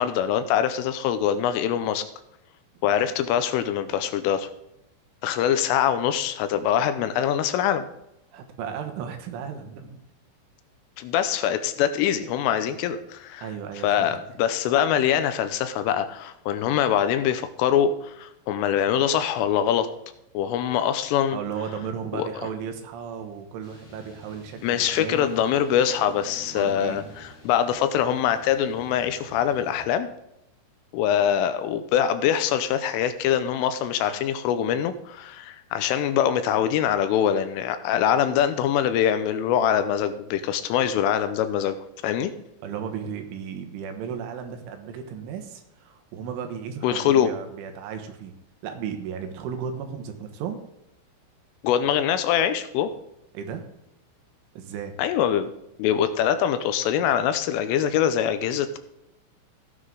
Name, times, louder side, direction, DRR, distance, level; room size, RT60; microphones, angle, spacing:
voice 1, 0.0-2.1 2.8-4.5 5.2-7.9 11.0-13.5 13.8-19.9 20.3-21.4 22.1-22.3 24.6-30.1 30.9-42.3 46.8-47.3 51.6-53.0 55.0-55.5 55.8-58.8, left 9 dB, 80° left, 10 dB, 3.2 m, -23 dB
voice 2, 8.3-10.0 13.4-14.1 21.3-25.3 26.5-27.0 42.6-48.3 48.6-50.6 53.3-53.7 54.5-54.9, right 7 dB, 75° right, 6 dB, 3.6 m, -35 dB
sound 1, 23.6-29.8, right 1 dB, 35° left, 4.2 m, -48 dB
15.5 x 9.7 x 3.9 m, 0.83 s
omnidirectional pair, 6.0 m